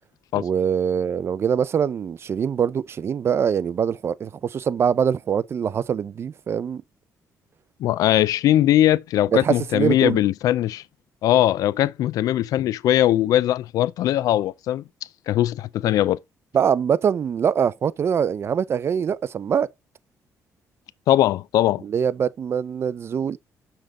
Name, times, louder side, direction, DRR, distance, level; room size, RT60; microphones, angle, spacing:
voice 1, 0.4-6.8 9.3-10.2 16.5-19.7 21.8-23.4, right 7 dB, 45° right, 0.6 m, -23 dB
voice 2, 7.8-10.8 11.2-14.8 15.3-16.2 21.1-21.8, left 13 dB, 75° left, 0.4 m, -20 dB
6.6 x 5.9 x 3.6 m
cardioid pair, 110°, 6 cm